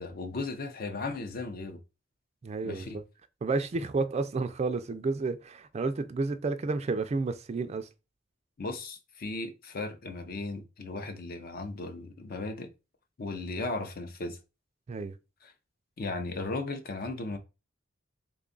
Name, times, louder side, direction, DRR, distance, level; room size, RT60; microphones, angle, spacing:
voice 1, 0.0-1.8 2.6-3.0 8.6-12.7 13.2-14.4 15.4-15.5 16.0-17.4, left 3 dB, 50° left, 0.5 m, -36 dB
voice 2, 2.4-3.0 3.4-7.9 14.9-15.1, right 3 dB, 35° right, 0.3 m, -31 dB
3.4 x 2.3 x 3.8 m
head